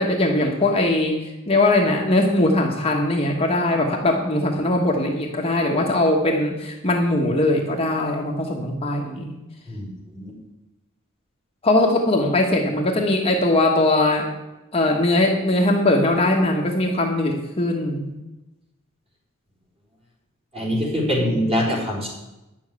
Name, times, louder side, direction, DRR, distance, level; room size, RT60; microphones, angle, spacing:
voice 1, 0.0-9.3 11.6-14.3 14.7-18.1 21.2-21.4, left 2 dB, 25° left, 0 dB, 1.3 m, -20 dB
voice 2, 9.7-10.4 20.5-22.1, equal, 30° right, -3 dB, 4.3 m, -24 dB
10.5 x 7.2 x 8.4 m, 0.99 s
head